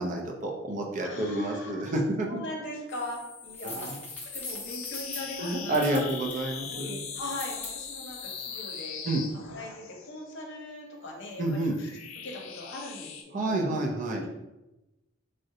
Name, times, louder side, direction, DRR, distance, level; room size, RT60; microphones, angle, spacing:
voice 1, 0.0-2.4 3.6-4.0 5.4-7.0 9.0-9.2 11.4-11.8 13.3-14.2, right 1 dB, 40° right, 1 dB, 0.4 m, -29 dB
voice 2, 1.0-1.9 2.2-6.1 6.7-9.2 9.5-11.9 12.2-13.7 14.1-14.3, left 1 dB, 60° left, -1 dB, 0.7 m, -40 dB
sound 1, 2.9-10.2 11.1-13.2, left 6 dB, 90° left, 0.4 m, -41 dB
sound 2, 3.5-6.4 7.2-7.7, left 2 dB, 10° left, 0.6 m, -40 dB
3.7 x 2.1 x 2.7 m, 0.99 s
head